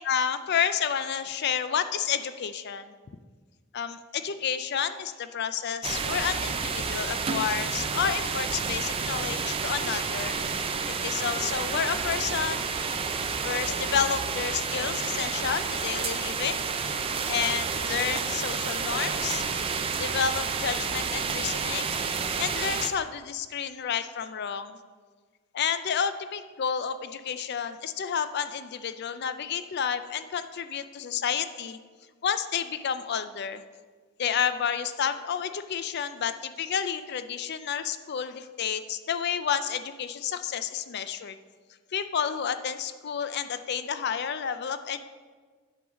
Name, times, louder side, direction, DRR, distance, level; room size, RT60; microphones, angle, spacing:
voice 1, 0.0-2.9 3.7-10.4 10.7-12.9 13.4-16.6 17.3-19.4 20.0-22.0 22.4-24.8 25.5-31.8 32.2-33.6 34.2-41.4 41.9-45.0, left 7 dB, 50° left, 11 dB, 0.4 m, -30 dB
sound 1, 5.8-22.9, right 5 dB, 25° right, 0.3 m, -30 dB
8.6 x 3.9 x 6.2 m, 1.5 s
head